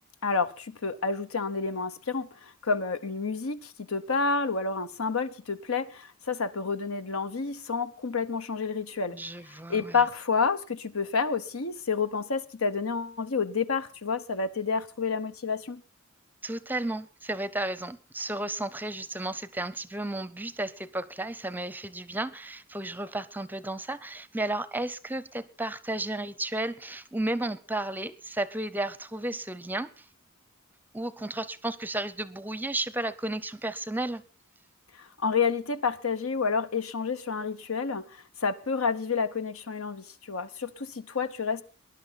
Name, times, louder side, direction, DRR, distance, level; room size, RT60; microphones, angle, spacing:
voice 1, 0.2-9.2 9.7-15.8 34.9-41.6, left 5 dB, 85° left, 1.1 m, -29 dB
voice 2, 9.1-10.0 16.4-30.1 30.9-34.2, right 1 dB, 10° right, 0.6 m, -33 dB
20.0 x 11.0 x 4.1 m
head